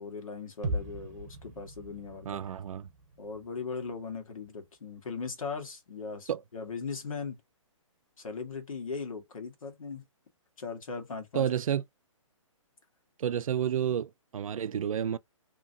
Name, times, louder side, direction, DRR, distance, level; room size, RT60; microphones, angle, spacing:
voice 1, 0.0-2.4 3.2-7.4 8.2-10.0 10.6-11.5, left 5 dB, 85° left, 1.4 m, -39 dB
sound 1, 0.6-4.6 4.9-5.0, right 1 dB, 35° right, 0.9 m, -40 dB
voice 2, 2.2-2.9 6.3-6.4 11.3-11.8 13.2-15.2, right 9 dB, 80° right, 0.4 m, -30 dB
2.8 x 2.6 x 2.6 m
hypercardioid pair, 170°, 17 cm